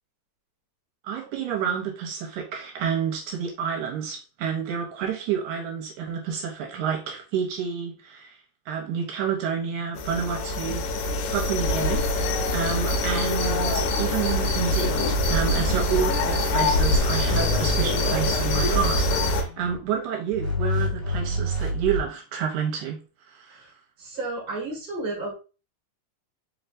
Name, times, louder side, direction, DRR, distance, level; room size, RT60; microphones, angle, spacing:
voice 1, 1.0-8.4 8.7-23.0 23.3-23.7, right 7 dB, 80° right, 2.0 m, -29 dB
sound 1, 10.0-19.4, left 2 dB, 80° left, 2.2 m, -24 dB
sound 2, 15.2-16.6 16.9-19.8 20.3-22.0, equal, 25° left, 1.5 m, -29 dB
voice 2, 24.0-25.3, right 2 dB, 30° right, 1.1 m, -32 dB
4.5 x 3.4 x 2.5 m
omnidirectional pair, 3.7 m